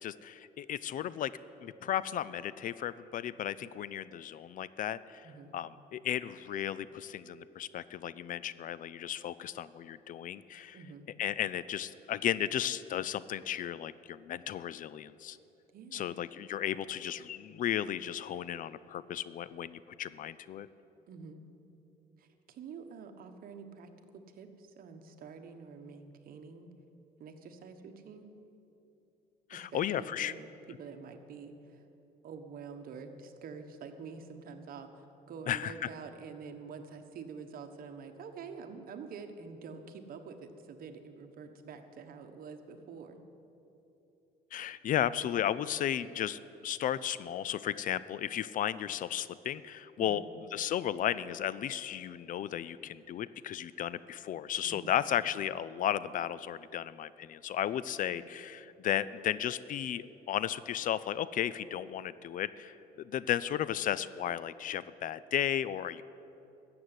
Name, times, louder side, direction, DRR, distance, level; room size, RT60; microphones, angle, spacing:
voice 1, 0.0-1.3 1.6-5.3 5.5-10.8 11.2-15.4 15.9-20.7 29.5-30.3 35.5-35.9 44.5-50.2 50.5-66.0, left 10 dB, 55° left, 17 dB, 0.5 m, -34 dB
voice 2, 10.7-11.1 15.7-16.2 21.1-21.4 22.2-26.7 27.2-28.3 29.5-31.8 32.2-43.2 50.0-50.2 54.6-54.9 58.1-58.3, right 5 dB, 60° right, 6 dB, 1.3 m, -47 dB
14.0 x 7.8 x 9.7 m, 3.0 s
cardioid pair, 110°, 17 cm